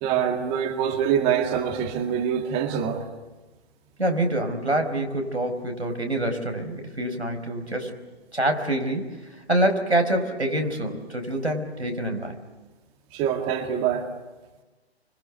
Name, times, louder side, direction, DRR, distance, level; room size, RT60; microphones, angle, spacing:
voice 1, 0.0-3.1 13.1-14.1, right 8 dB, 20° right, 6 dB, 2.0 m, -25 dB
voice 2, 4.0-8.0 8.3-12.4, right 1 dB, 85° right, 4 dB, 4.8 m, -26 dB
27.5 x 25.5 x 8.3 m, 1.2 s
figure-of-eight pair, 130°, 32 cm